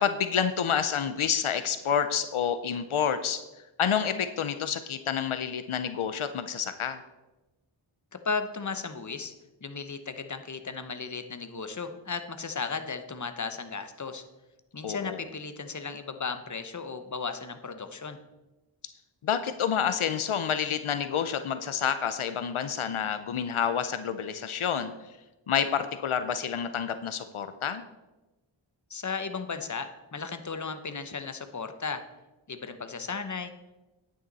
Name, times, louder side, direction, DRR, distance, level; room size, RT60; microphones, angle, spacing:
voice 1, 0.0-3.4 3.8-7.0 14.8-15.2 19.2-25.1 25.5-27.8, left 8 dB, 85° left, 10 dB, 0.7 m, -29 dB
voice 2, 8.2-9.3 9.6-14.2 14.7-18.2 28.9-32.0 32.5-33.5, left 5 dB, 35° left, 8 dB, 0.9 m, -35 dB
10.0 x 9.3 x 4.1 m, 1.1 s
wide cardioid pair, 50°, 48 cm